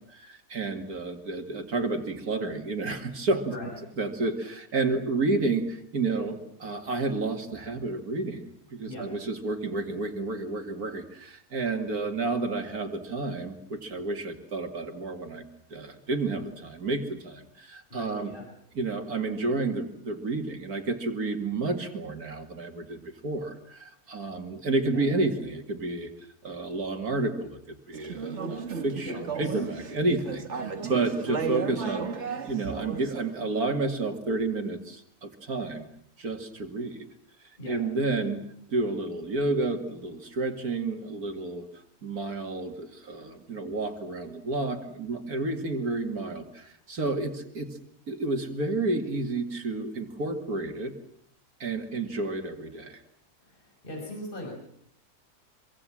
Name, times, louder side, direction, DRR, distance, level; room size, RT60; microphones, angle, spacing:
voice 1, 0.0-3.6 4.0-8.4 8.7-15.4 15.7-18.3 18.7-32.1 32.4-35.9 36.2-37.1 37.7-41.7 42.0-47.8 48.1-50.9 51.6-53.0, right 3 dB, 75° right, 5 dB, 2.7 m, -30 dB
voice 2, 3.5-3.8 8.9-9.1 17.9-18.4 24.8-25.1 29.0-29.7 37.6-37.8 53.4-54.5, left 1 dB, 35° left, 1 dB, 6.1 m, -40 dB
Conversation / Chatter, 27.9-33.3, right 5 dB, 50° right, 1.8 m, -34 dB
25.5 x 24.5 x 7.6 m, 0.69 s
omnidirectional pair, 1.6 m